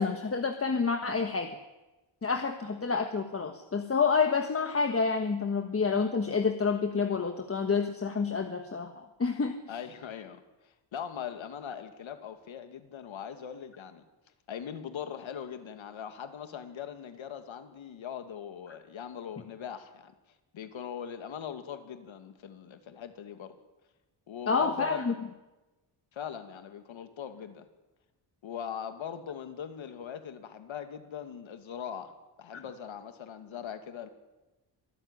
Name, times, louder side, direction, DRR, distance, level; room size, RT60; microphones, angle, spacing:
voice 1, 0.0-1.5 2.2-9.6 24.5-25.1 32.5-32.6, left 5 dB, 30° left, 7 dB, 1.4 m, -28 dB
voice 2, 9.7-14.0 14.5-20.1 20.5-23.5 24.3-25.1 26.1-27.7 28.4-32.1 32.4-34.1, left 8 dB, 75° left, 8 dB, 2.5 m, -41 dB
25.0 x 14.0 x 10.0 m, 1.1 s
wide cardioid pair, 135°, 47 cm